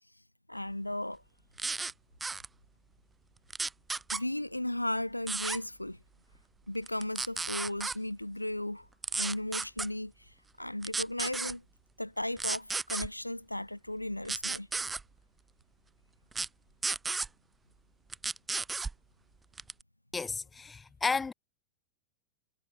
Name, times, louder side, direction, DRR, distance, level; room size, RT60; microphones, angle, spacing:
voice 1, 0.5-1.2 4.1-6.0 6.7-8.9 9.1-11.6 12.0-14.7, left 1 dB, 85° left, 2.9 m, -35 dB
sound 1, 1.6-1.9 2.2-2.5 3.5-4.2 5.3-5.6 6.9-8.0 9.0-9.9 10.8-11.5 12.4-13.1 14.2-15.0 16.3-16.5 16.8-17.3 18.1-18.9 19.6-19.8, right 4 dB, 10° right, 3.2 m, -33 dB
voice 2, 20.1-21.3, left 4 dB, 15° left, 2.6 m, -32 dB
figure-of-eight pair, 90°, 0 cm